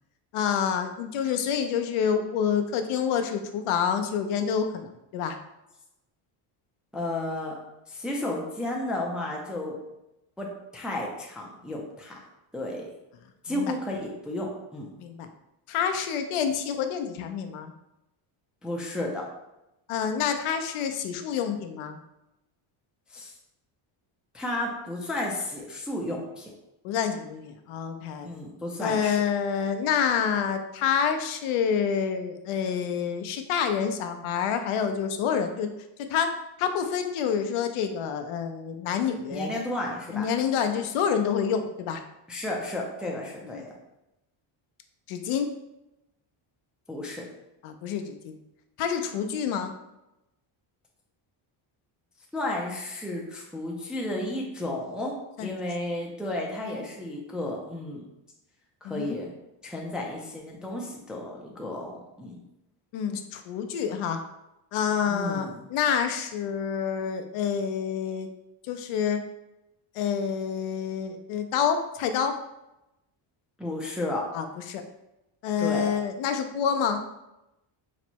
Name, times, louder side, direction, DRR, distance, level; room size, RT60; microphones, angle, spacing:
voice 1, 0.3-5.4 13.5-13.7 15.0-15.3 15.7-17.7 19.9-22.0 26.8-28.3 28.8-35.7 36.1-36.3 36.6-39.5 40.1-42.0 43.5-43.6 45.1-45.5 47.6-48.4 48.8-49.7 55.4-55.6 56.6-56.7 58.8-59.2 62.9-64.2 64.7-68.3 68.7-69.2 69.9-72.3 74.3-74.8 75.4-77.0, left 7 dB, 75° left, 6 dB, 0.6 m, -28 dB
voice 2, 6.9-7.6 7.9-9.8 10.4-12.2 12.5-12.9 13.4-14.9 18.6-19.3 23.1-23.3 24.3-26.5 28.2-29.2 39.3-40.3 42.3-43.7 46.9-47.3 52.3-55.1 55.4-58.0 58.8-59.3 59.6-62.4 65.1-65.6 73.6-74.3 75.6-75.9, left 1 dB, ahead, -2 dB, 0.3 m, -33 dB
4.1 x 2.0 x 4.4 m, 0.90 s
cardioid pair, 145°, 50 cm